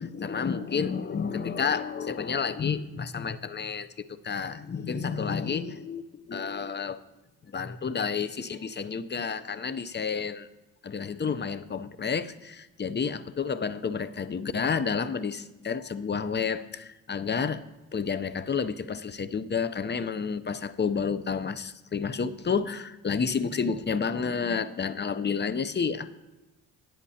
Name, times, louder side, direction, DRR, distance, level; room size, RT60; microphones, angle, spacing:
voice 1, 0.0-3.9 4.2-7.0 7.5-10.5 10.8-17.7 17.9-26.1, left 6 dB, 25° left, 13 dB, 0.6 m, -30 dB
18.0 x 8.7 x 2.8 m, 1.1 s
supercardioid pair, 65°, 40 cm